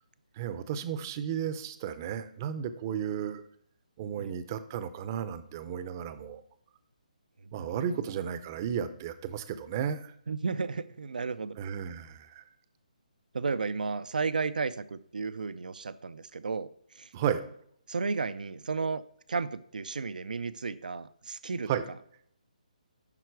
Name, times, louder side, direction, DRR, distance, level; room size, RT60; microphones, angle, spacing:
voice 1, 0.4-3.4 4.0-6.4 7.5-10.1 11.6-12.4 17.1-17.4 21.7-21.8, right 8 dB, 25° right, 12 dB, 0.6 m, -33 dB
voice 2, 7.5-8.2 10.3-11.6 13.3-17.1 17.9-19.0 19.3-21.7, right 4 dB, 85° right, 16 dB, 0.5 m, -33 dB
11.0 x 4.5 x 4.6 m, 0.66 s
hypercardioid pair, 165°, 4 cm